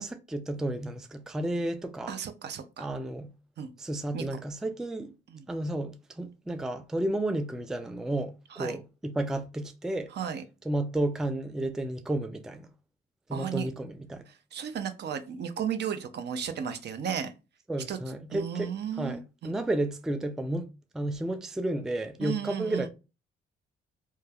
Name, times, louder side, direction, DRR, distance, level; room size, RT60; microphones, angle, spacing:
voice 1, 0.0-2.1 2.8-3.3 3.8-5.1 5.5-10.1 10.7-12.7 13.3-14.2 17.7-20.7 20.9-22.9, right 1 dB, 5° right, 0.3 m, -32 dB
voice 2, 2.1-2.9 3.6-3.7 4.1-4.2 5.3-5.5 8.5-8.8 10.1-10.4 13.3-13.7 14.5-17.3 17.9-18.0 18.3-19.5 22.2-22.9, right 8 dB, 55° right, 0.5 m, -34 dB
3.0 x 2.2 x 2.3 m
supercardioid pair, 65°, 21 cm